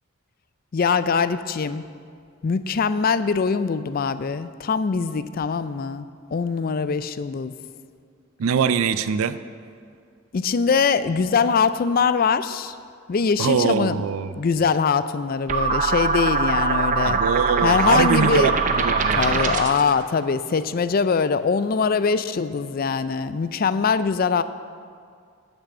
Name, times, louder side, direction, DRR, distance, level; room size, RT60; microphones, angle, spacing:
voice 1, 0.7-1.9 2.4-7.5 10.3-12.8 13.1-14.0 14.4-17.2 17.6-18.5 19.2-24.4, left 5 dB, 45° left, 14 dB, 0.4 m, -22 dB
voice 2, 8.4-9.4 13.4-14.4 17.0-19.5, right 6 dB, 90° right, 14 dB, 0.4 m, -23 dB
sound 1, 15.5-19.9, right 4 dB, 35° right, 0.6 m, -22 dB
9.9 x 6.1 x 7.7 m, 2.2 s
head